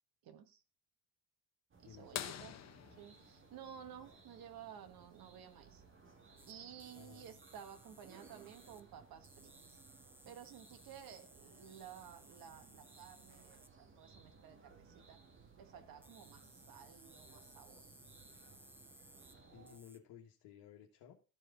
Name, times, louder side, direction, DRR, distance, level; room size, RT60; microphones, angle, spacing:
voice 1, 0.2-0.6 1.8-2.5 2.9-5.8 6.5-9.8 10.2-15.2 15.6-17.8, right 8 dB, 55° right, 8 dB, 1.4 m, -54 dB
sound 1, 1.7-19.8, right 4 dB, 30° right, 1.8 m, -62 dB
voice 2, 1.8-2.5 7.0-7.4 19.5-21.1, left 9 dB, 70° left, 0 dB, 1.5 m, -57 dB
sound 2, 2.1-4.6 6.5-6.6 8.9-9.0 10.7-10.9 11.7-11.8, left 10 dB, 40° left, 0.8 m, -46 dB
sound 3, 6.4-6.5 6.8-8.8 9.2-13.7 16.0-19.4 19.6-20.0, right 1 dB, 5° right, 0.5 m, -62 dB
13.5 x 4.8 x 3.8 m, 0.34 s
cardioid pair, 125°, 41 cm